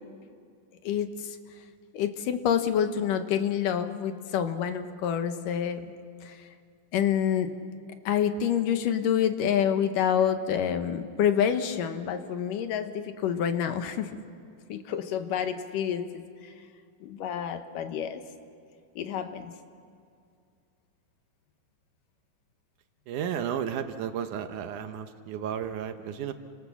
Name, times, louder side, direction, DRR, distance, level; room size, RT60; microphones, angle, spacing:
voice 1, 0.8-1.4 1.9-5.9 6.2-6.4 6.9-7.6 8.1-14.1 14.7-16.2 17.0-18.2 19.0-19.5, left 8 dB, 75° left, 8 dB, 2.7 m, -27 dB
voice 2, 23.1-26.3, right 9 dB, 70° right, 8 dB, 2.3 m, -33 dB
30.0 x 25.5 x 7.2 m, 2.3 s
omnidirectional pair, 3.9 m